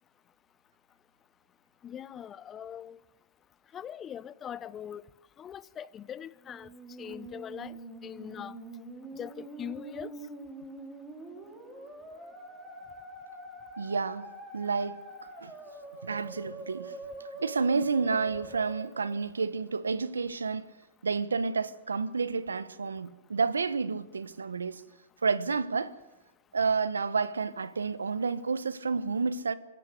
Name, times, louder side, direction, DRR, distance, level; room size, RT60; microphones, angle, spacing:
voice 1, 1.8-3.0 3.7-5.0 5.4-6.7 7.0-7.7 8.0-8.5 9.2-10.1, left 9 dB, 25° left, 0.8 m, -41 dB
Musical instrument, 6.4-19.7, right 2 dB, 20° right, 5.3 m, -45 dB
voice 2, 13.8-14.2 14.5-15.0 15.4-15.5 16.0-16.9 17.4-20.7 21.0-24.8 25.2-25.9 26.5-29.6, right 4 dB, 90° right, 1.2 m, -30 dB
25.5 x 14.5 x 8.3 m
hypercardioid pair, 110°, 0 cm